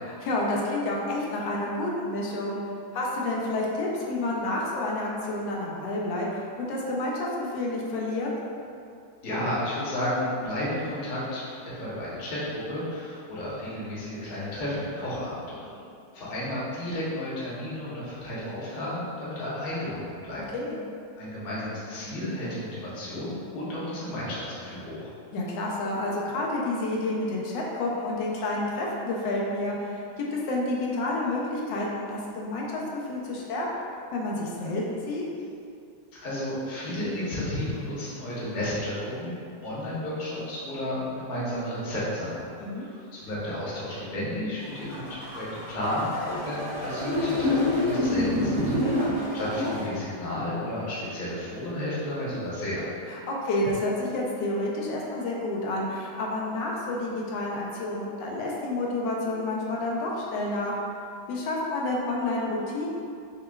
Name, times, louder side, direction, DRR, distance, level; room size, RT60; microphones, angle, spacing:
voice 1, 0.2-2.6 2.9-8.3 15.7-15.9 20.5-20.8 25.3-32.8 33.1-33.7 34.1-35.2 42.6-42.8 48.8-49.2 53.1-60.7 61.3-62.9, left 2 dB, 85° left, -3 dB, 1.3 m, -29 dB
voice 2, 9.2-15.6 16.1-20.4 21.2-25.1 36.1-49.1 49.3-52.9, left 1 dB, 40° left, -9 dB, 0.9 m, -32 dB
sound 1, 44.6-49.9, left 1 dB, 65° right, 0.3 m, -27 dB
5.7 x 2.2 x 2.2 m, 2.5 s
omnidirectional pair, 1.9 m